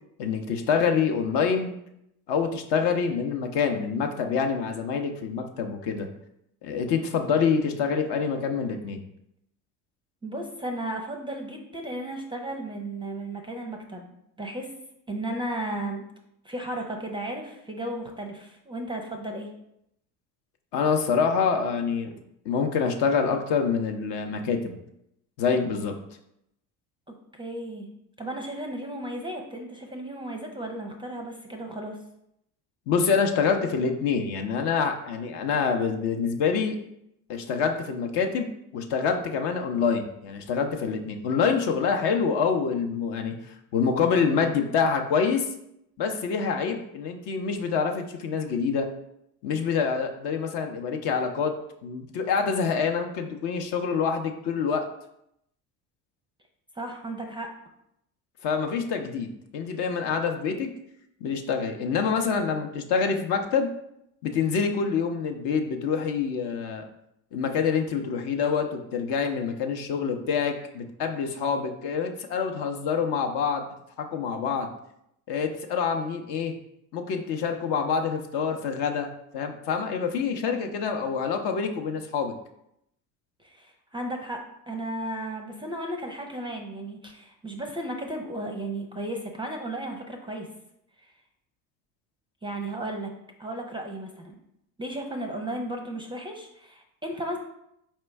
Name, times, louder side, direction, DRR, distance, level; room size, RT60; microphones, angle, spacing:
voice 1, 0.2-1.7 2.3-6.1 6.6-9.0 20.7-24.8 25.4-25.9 32.9-36.8 37.3-38.5 38.7-45.5 46.0-48.9 49.4-51.5 51.8-54.8 58.4-60.7 61.2-63.7 64.2-66.8 67.3-73.7 74.0-74.7 75.3-76.5 76.9-79.1 79.3-82.3, left 6 dB, 55° left, 4 dB, 0.7 m, -26 dB
voice 2, 10.2-14.7 15.1-16.0 16.4-19.5 27.1-27.9 28.2-32.0 56.8-57.5 83.4-84.4 84.7-90.5 91.0-91.1 92.4-93.1 93.4-94.3 94.8-97.4, right 1 dB, 10° right, 3 dB, 0.5 m, -34 dB
4.3 x 2.9 x 3.4 m, 0.78 s
hypercardioid pair, 70°, 48 cm